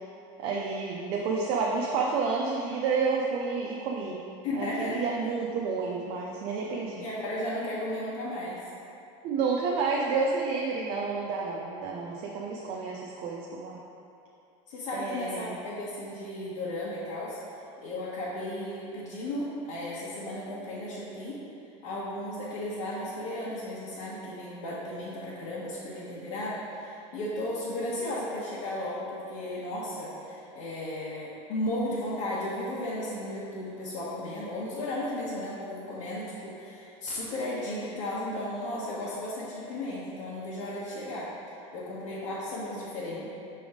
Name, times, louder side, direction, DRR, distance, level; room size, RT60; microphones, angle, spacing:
voice 1, 0.4-4.2 4.5-7.0 9.2-13.8 14.9-15.6, right 4 dB, 35° right, -2 dB, 0.5 m, -30 dB
voice 2, 4.4-5.0 7.0-8.7 14.7-17.4 17.8-21.4 21.8-41.3 41.7-43.3, left 1 dB, 65° left, -9 dB, 1.3 m, -35 dB
7.0 x 3.4 x 4.9 m, 2.7 s
supercardioid pair, 175°, 16 cm